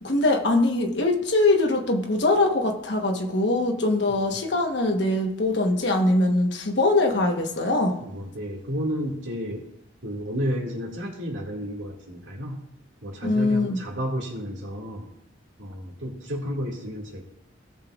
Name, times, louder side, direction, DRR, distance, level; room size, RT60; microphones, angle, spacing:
voice 1, 0.0-8.0 13.2-13.8, left 2 dB, 60° left, 2 dB, 1.2 m, -22 dB
voice 2, 8.0-9.6 10.0-12.6 13.0-15.1 15.6-17.2, equal, 80° right, -1 dB, 2.1 m, -32 dB
16.0 x 6.9 x 2.4 m, 0.80 s
head